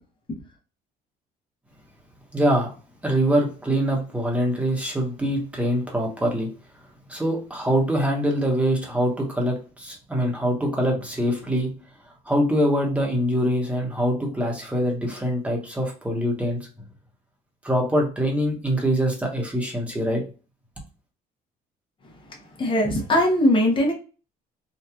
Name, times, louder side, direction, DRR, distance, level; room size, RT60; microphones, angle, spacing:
voice 1, 2.3-2.7 3.0-6.5 7.1-11.7 12.3-16.7 17.6-20.2, equal, 10° right, 0 dB, 1.0 m, -24 dB
voice 2, 22.6-23.9, left 1 dB, 30° left, 0 dB, 0.9 m, -20 dB
2.9 x 2.4 x 2.3 m, 0.35 s
cardioid pair, 110°, 17 cm